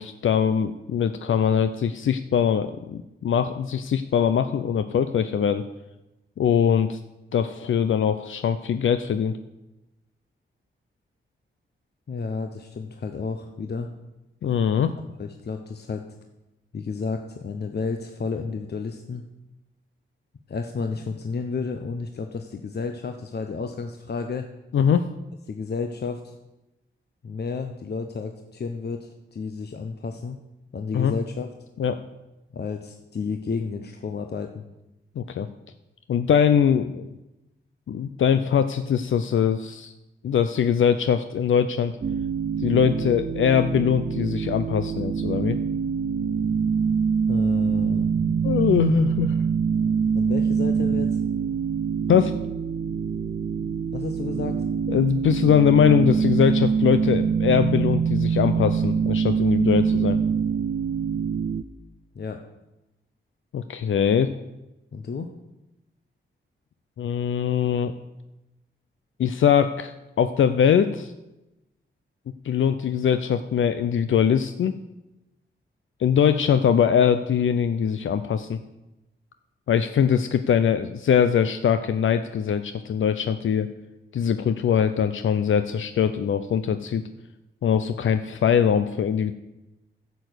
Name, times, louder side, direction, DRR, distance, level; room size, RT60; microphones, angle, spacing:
voice 1, 0.0-5.6 6.4-7.0 7.3-9.4 14.4-14.9 24.7-25.1 30.9-31.1 31.8-32.0 35.2-35.5 36.1-37.1 37.9-39.9 40.2-41.9 42.6-45.6 48.4-49.4 52.1-52.3 54.9-60.2 63.5-64.3 67.0-67.9 69.2-71.1 72.4-74.7 76.0-78.6 79.7-83.7 84.1-87.0 87.6-89.3, left 8 dB, 80° left, 10 dB, 0.6 m, -22 dB
voice 2, 12.1-13.9 15.2-16.0 16.7-19.2 20.5-24.5 25.5-26.3 27.2-30.4 30.7-31.5 32.5-34.6 47.3-48.8 50.1-51.2 53.9-54.6 62.1-62.4 64.9-65.3, left 4 dB, 55° left, 6 dB, 0.9 m, -31 dB
sound 1, 42.0-61.6, right 6 dB, 45° right, 0.6 m, -24 dB
10.5 x 7.0 x 8.0 m, 0.96 s
cardioid pair, 80°, 20 cm